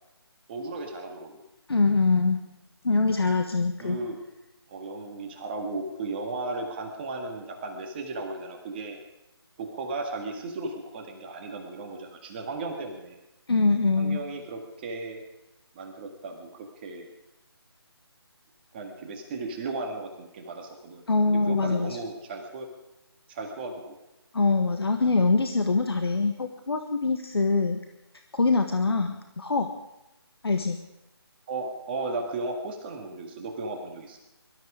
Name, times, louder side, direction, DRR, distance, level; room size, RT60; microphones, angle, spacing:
voice 1, 0.5-1.4 3.8-4.2 4.7-9.0 9.6-13.2 14.0-15.2 15.8-16.5 16.8-17.1 18.7-22.7 23.3-23.9 27.5-27.6 28.9-29.0 31.5-34.2, right 3 dB, 25° right, 3 dB, 1.8 m, -35 dB
voice 2, 1.7-2.4 2.8-4.0 13.5-14.2 21.1-22.0 24.3-27.8 28.3-29.7 30.4-30.8, left 3 dB, 70° left, 5 dB, 1.5 m, -24 dB
22.5 x 13.0 x 5.0 m, 0.94 s
figure-of-eight pair, 155°, 14 cm